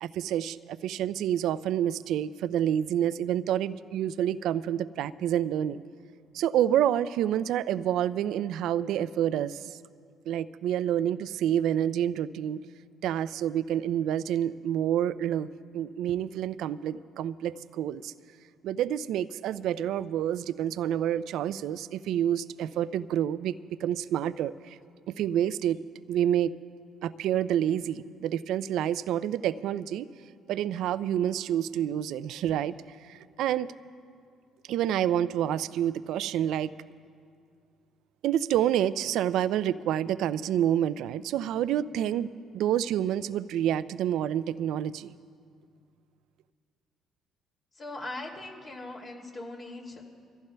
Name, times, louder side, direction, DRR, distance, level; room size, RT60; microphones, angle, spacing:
voice 1, 0.0-5.8 6.3-9.8 10.3-12.6 13.0-15.5 15.7-18.1 18.6-23.6 23.8-24.8 25.1-25.8 26.1-26.5 27.0-30.1 30.5-32.7 33.1-33.7 34.7-36.7 38.2-45.1, right 10 dB, 75° right, 16 dB, 0.4 m, -28 dB
voice 2, 47.7-50.0, left 2 dB, 40° left, 0 dB, 2.5 m, -40 dB
26.0 x 15.0 x 2.2 m, 2.2 s
supercardioid pair, 65°, 0 cm